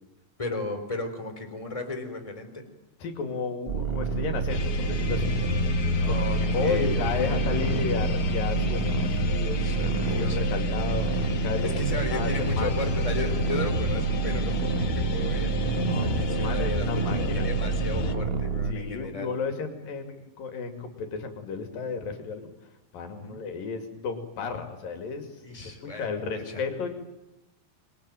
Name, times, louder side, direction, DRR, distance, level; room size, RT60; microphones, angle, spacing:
voice 1, 0.4-2.7 6.0-7.5 9.5-10.4 11.6-19.3 23.1-23.4 25.4-26.6, left 2 dB, 10° left, 5 dB, 3.9 m, -35 dB
voice 2, 3.0-5.4 6.1-6.2 6.5-9.6 10.1-12.7 15.9-17.5 18.7-22.5 22.9-25.3 26.0-26.9, left 5 dB, 75° left, 6 dB, 4.3 m, -33 dB
sound 1, 3.7-18.7, right 6 dB, 70° right, 0.5 m, -28 dB
sound 2, 4.5-18.1, left 6 dB, 50° left, 2.0 m, -31 dB
26.0 x 22.0 x 9.2 m, 0.93 s
omnidirectional pair, 4.0 m